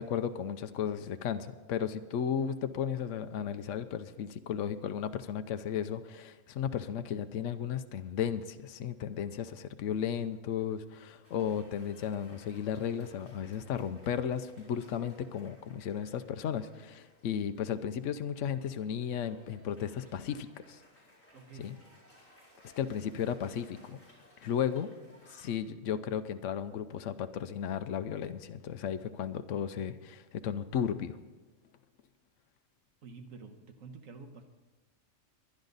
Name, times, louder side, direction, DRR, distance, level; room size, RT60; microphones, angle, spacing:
voice 1, 0.0-20.8 21.6-21.7 22.8-24.0 24.4-24.9 25.3-31.2, left 8 dB, 75° left, 10 dB, 1.0 m, -34 dB
Cheering / Applause, 11.2-25.5, equal, 10° left, 4.3 m, -61 dB
voice 2, 21.3-21.7 33.0-34.4, right 4 dB, 85° right, 6 dB, 1.6 m, -49 dB
21.5 x 10.5 x 4.0 m, 1.2 s
omnidirectional pair, 1.3 m